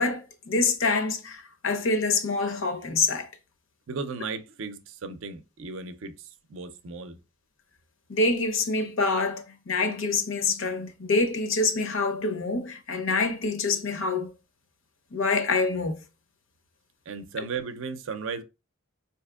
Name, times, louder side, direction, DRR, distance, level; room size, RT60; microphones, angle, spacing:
voice 1, 0.0-3.3 8.1-14.3 15.1-16.0, left 3 dB, 65° left, 0.7 m, -26 dB
voice 2, 3.9-7.2 17.1-18.4, right 4 dB, 60° right, 0.5 m, -36 dB
4.2 x 2.8 x 2.3 m
head